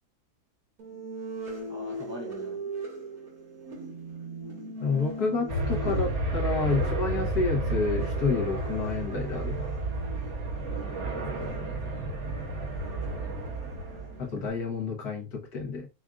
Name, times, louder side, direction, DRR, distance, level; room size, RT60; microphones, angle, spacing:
sound 1, 0.8-14.5, right 2 dB, 70° right, 2.3 m, -41 dB
voice 1, 1.7-2.6 10.7-12.3, left 1 dB, 15° left, 0.5 m, -45 dB
voice 2, 4.8-9.7 14.2-15.9, left 4 dB, 85° left, 1.8 m, -29 dB
sound 2, 5.5-14.2, right 2 dB, 55° right, 1.2 m, -31 dB
6.0 x 2.5 x 2.4 m
omnidirectional pair, 1.6 m